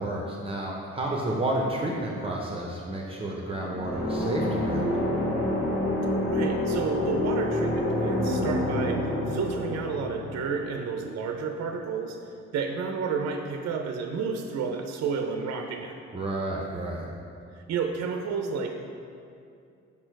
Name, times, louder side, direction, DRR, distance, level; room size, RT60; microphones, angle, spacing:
voice 1, 0.0-4.9 16.1-17.1, right 1 dB, 20° right, -3 dB, 0.7 m, -31 dB
sound 1, 3.7-11.4, left 1 dB, 40° left, 1.4 m, -28 dB
voice 2, 6.3-12.2 12.5-16.0 17.7-18.8, right 5 dB, 60° right, 4 dB, 0.5 m, -31 dB
5.4 x 4.4 x 4.5 m, 2.5 s
cardioid pair, 90°, 30 cm